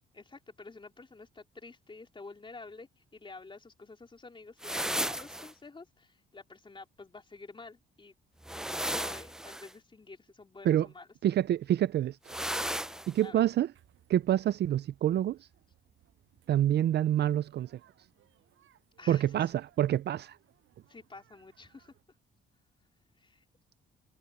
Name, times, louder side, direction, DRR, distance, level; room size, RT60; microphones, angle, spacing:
voice 1, 0.1-8.1 8.6-11.1 13.2-13.4 19.0-19.4 20.9-21.9 23.2-23.4, left 3 dB, 25° left, 3.8 m, -50 dB
sound 1, 4.6-5.5 8.4-9.7 12.3-13.1, right 1 dB, 5° right, 0.6 m, -34 dB
voice 2, 11.2-12.3 13.1-13.7 14.1-15.4 16.5-17.7 19.1-20.4, right 12 dB, 60° right, 0.5 m, -27 dB
sound 2, 13.7-22.0, right 12 dB, 75° right, 7.9 m, -66 dB
cardioid pair, 90°, 20 cm